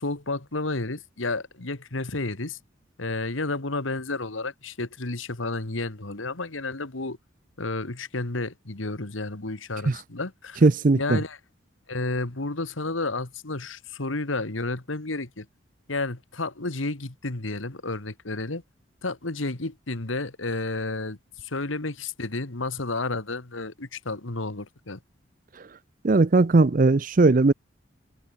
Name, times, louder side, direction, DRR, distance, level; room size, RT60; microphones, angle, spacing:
voice 1, 0.0-2.6 3.0-7.2 7.6-10.6 10.9-11.4 11.9-15.5 15.9-18.6 19.0-25.0, left 2 dB, 90° left, 2.0 m, -31 dB
voice 2, 10.6-11.2 26.0-27.5, right 3 dB, 45° right, 0.5 m, -18 dB
head